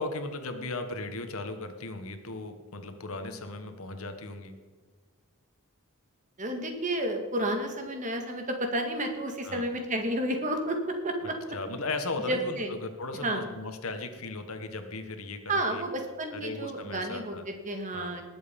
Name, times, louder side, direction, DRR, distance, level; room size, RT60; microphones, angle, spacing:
voice 1, 0.0-4.5 9.4-9.6 11.5-15.8 16.3-17.4 17.9-18.1, left 2 dB, 70° left, 7 dB, 1.6 m, -37 dB
voice 2, 6.4-11.4 12.3-12.7 13.2-13.4 15.5-18.2, right 1 dB, 35° right, 5 dB, 2.0 m, -31 dB
20.0 x 7.9 x 5.4 m, 1.5 s
head